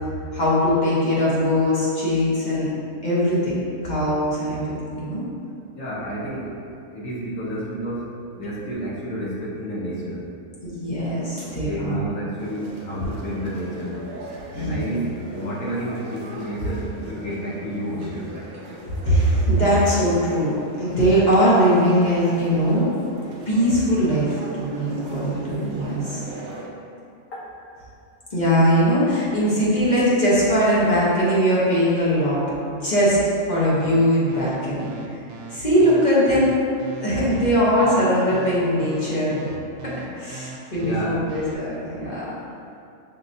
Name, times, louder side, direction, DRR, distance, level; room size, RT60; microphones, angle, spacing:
voice 1, 0.3-2.7 3.0-4.6 4.9-5.2 10.6-12.1 14.5-15.0 19.0-22.9 23.5-26.2 28.3-33.2 33.5-35.2 35.5-36.5 37.0-39.3 39.8-42.3, equal, 35° left, -8 dB, 1.0 m, -21 dB
voice 2, 5.7-6.7 6.9-10.2 11.4-14.0 14.5-18.3 27.3-27.4 40.8-41.2, equal, 75° left, -7 dB, 1.3 m, -30 dB
sound 1, 12.4-26.7, right 1 dB, 60° right, 0.8 m, -39 dB
sound 2, 33.8-41.5, right 6 dB, 85° right, 1.0 m, -38 dB
5.8 x 2.9 x 2.6 m, 2.5 s
omnidirectional pair, 1.4 m